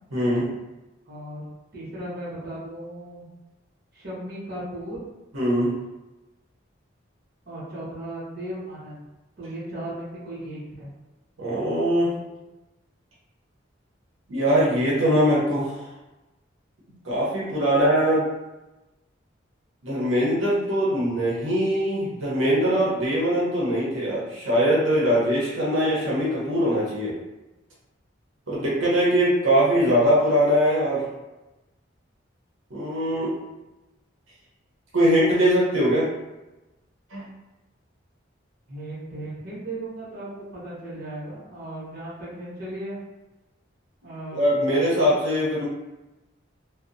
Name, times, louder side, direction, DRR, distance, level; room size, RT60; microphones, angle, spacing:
voice 1, 0.1-0.6 5.3-5.7 11.4-12.1 14.3-15.8 17.0-18.3 19.8-27.1 28.5-31.1 32.7-33.3 34.9-36.1 37.1-37.2 44.3-45.7, equal, 80° right, -7 dB, 0.8 m, -22 dB
voice 2, 1.1-1.5 1.7-3.3 3.9-5.0 7.5-9.0 9.4-10.9 38.7-43.0 44.0-44.4, right 1 dB, 50° right, -8 dB, 0.9 m, -36 dB
2.7 x 2.1 x 2.5 m, 1.0 s
head